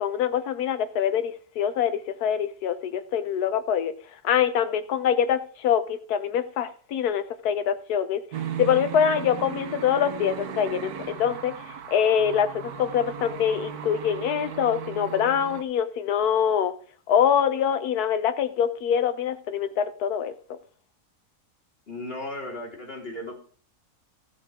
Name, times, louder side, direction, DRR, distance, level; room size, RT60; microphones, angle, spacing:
voice 1, 0.0-3.9 4.2-8.2 8.6-16.7 17.1-20.6, left 8 dB, 90° left, 1.3 m, -24 dB
sound 1, 8.3-15.6, right 8 dB, 80° right, 1.6 m, -36 dB
voice 2, 21.9-23.3, left 1 dB, 40° left, 3.4 m, -35 dB
14.0 x 6.9 x 4.9 m
omnidirectional pair, 1.6 m